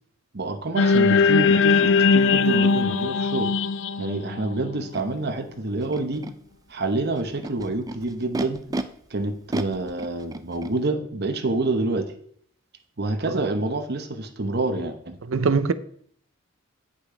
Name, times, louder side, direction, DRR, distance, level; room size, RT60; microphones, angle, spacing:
voice 1, 0.3-3.5 4.0-6.3 6.7-8.6 9.1-12.1 13.0-15.2, right 2 dB, 55° right, 1.0 m, -27 dB
sound 1, 0.8-5.1, left 4 dB, 65° left, 0.4 m, -20 dB
Animal, 4.9-5.0 5.8-6.3 7.2-8.8 9.5-10.7, right 2 dB, 20° right, 0.4 m, -32 dB
voice 2, 15.3-15.7, right 4 dB, 70° right, 0.6 m, -21 dB
8.5 x 6.2 x 5.0 m
head